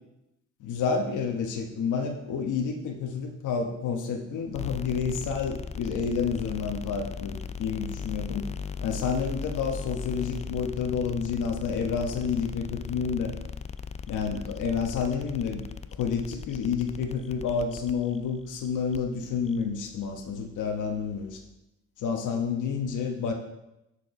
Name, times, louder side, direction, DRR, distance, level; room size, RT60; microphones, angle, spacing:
voice 1, 0.6-8.5 8.8-13.3 14.1-15.6 15.9-21.4 22.0-23.3, left 6 dB, 80° left, 4 dB, 1.1 m, -29 dB
sound 1, 4.5-21.5, left 5 dB, 25° left, 0.3 m, -39 dB
6.6 x 4.7 x 5.7 m, 0.89 s
cardioid pair, 90°, 30 cm